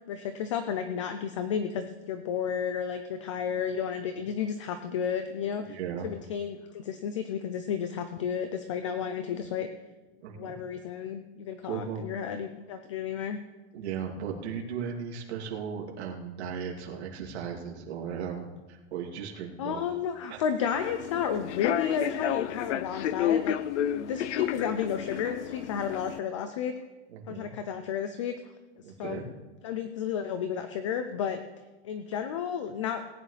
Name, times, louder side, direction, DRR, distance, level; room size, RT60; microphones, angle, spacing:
voice 1, 0.0-5.8 6.0-9.7 10.3-13.4 19.6-23.6 23.9-26.7 27.3-28.3 29.0-29.2 29.6-31.4 31.8-33.0, left 7 dB, 30° left, 9 dB, 0.4 m, -32 dB
voice 2, 5.7-6.1 10.2-10.6 11.6-12.0 13.7-19.8 20.3-20.4 27.1-27.5 28.8-29.2, right 7 dB, 70° right, 0 dB, 2.6 m, -36 dB
Human voice / Subway metro underground, 20.7-26.2, left 10 dB, 85° left, 0.6 m, -31 dB
18.0 x 9.8 x 3.3 m, 1.2 s
supercardioid pair, 175°, 34 cm